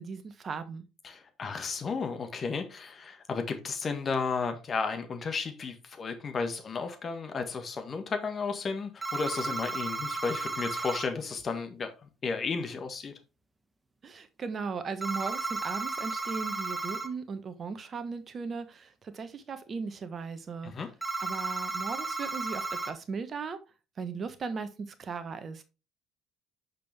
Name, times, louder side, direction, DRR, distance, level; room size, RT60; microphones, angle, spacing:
voice 1, 0.0-0.9 14.0-20.7 21.2-23.6 24.0-25.6, right 5 dB, 40° right, 1.1 m, -37 dB
voice 2, 1.0-13.1 20.6-20.9, left 5 dB, 40° left, 1.5 m, -33 dB
sound 1, 9.0-11.1 15.0-17.1 21.0-22.9, right 3 dB, 15° right, 1.2 m, -34 dB
6.6 x 5.3 x 3.4 m
hypercardioid pair, 55°, 0 cm